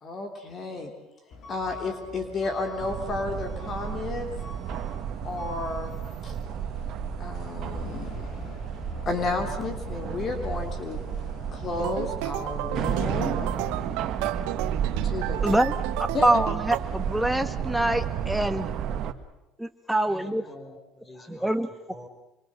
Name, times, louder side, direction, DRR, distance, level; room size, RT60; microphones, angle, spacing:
voice 1, 0.0-0.9 1.5-4.3 5.2-5.9 6.2-6.3 7.2-8.1 9.0-11.0 11.5-13.5 15.0-15.6 16.1-16.2, left 3 dB, 40° left, 5 dB, 3.5 m, -32 dB
Truck / Alarm, 1.3-18.5, left 4 dB, 55° left, 4.7 m, -45 dB
sound 1, 2.8-19.1, right 8 dB, 55° right, 1.7 m, -32 dB
sound 2, 11.8-16.8, right 15 dB, 80° right, 1.2 m, -33 dB
voice 2, 16.2-18.7 19.6-20.4 21.3-21.7, right 1 dB, 5° right, 7 dB, 1.6 m, -25 dB
voice 3, 20.0-22.1, left 1 dB, 20° left, 6 dB, 5.4 m, -47 dB
26.0 x 24.0 x 6.6 m, 0.94 s
supercardioid pair, 105°, 0 cm